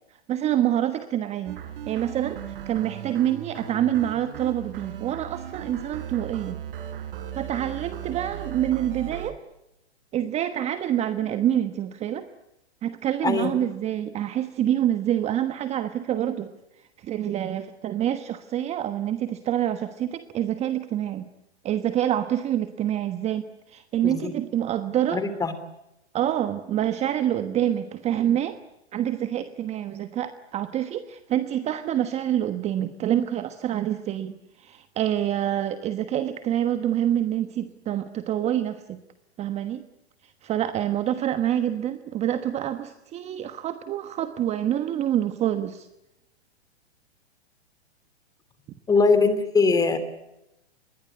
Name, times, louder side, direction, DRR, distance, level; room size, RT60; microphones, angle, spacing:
voice 1, 0.3-1.6 1.9-6.6 7.3-9.4 10.1-12.3 12.8-16.5 17.0-21.3 21.6-25.2 26.1-28.6 28.9-39.0 39.4-39.8 40.2-45.9, right 11 dB, 20° right, 10 dB, 1.2 m, -26 dB
sound 1, 1.5-9.3, right 9 dB, 55° right, 4.3 m, -37 dB
voice 2, 13.2-13.6 24.0-24.3 25.1-25.5 48.9-50.0, left 4 dB, 10° left, 12 dB, 2.9 m, -21 dB
27.0 x 21.5 x 9.8 m, 0.89 s
hypercardioid pair, 135°, 33 cm